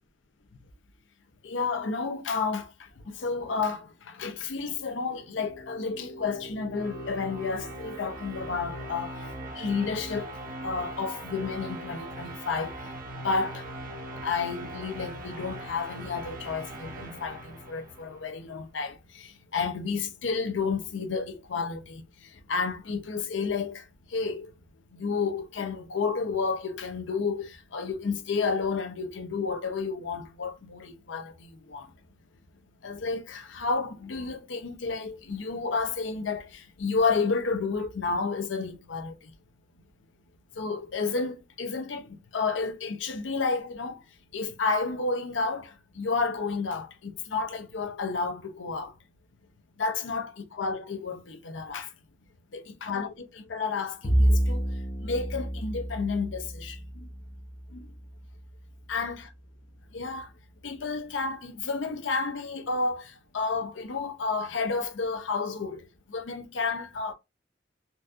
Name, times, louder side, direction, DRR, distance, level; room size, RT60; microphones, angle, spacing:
voice 1, 1.4-2.7 3.1-9.2 9.5-10.4 10.6-12.8 13.2-13.7 14.2-22.0 22.5-23.8 24.1-24.5 24.9-31.9 32.8-39.3 40.6-44.0 44.3-48.9 49.8-51.9 52.5-54.6 55.0-56.8 57.7-57.9 58.9-59.3 59.9-60.3 60.6-67.1, left 4 dB, 75° left, 0.6 m, -31 dB
sound 1, 5.2-18.3, right 1 dB, 50° right, 0.9 m, -40 dB
Bowed string instrument, 54.0-58.6, right 1 dB, 35° left, 0.7 m, -29 dB
4.0 x 2.4 x 2.4 m
head